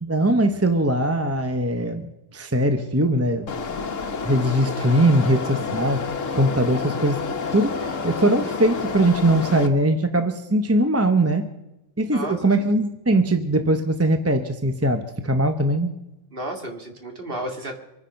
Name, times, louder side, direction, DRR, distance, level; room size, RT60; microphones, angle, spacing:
voice 1, 0.0-3.5 4.2-6.1 6.3-7.2 7.5-11.5 12.0-15.9, right 1 dB, 15° right, 7 dB, 0.7 m, -21 dB
sound 1, 3.5-9.7, left 5 dB, 80° left, 1.5 m, -29 dB
voice 2, 12.1-12.6 16.3-17.8, right 1 dB, 50° right, 3 dB, 2.3 m, -32 dB
25.0 x 10.0 x 5.2 m, 0.96 s
omnidirectional pair, 1.3 m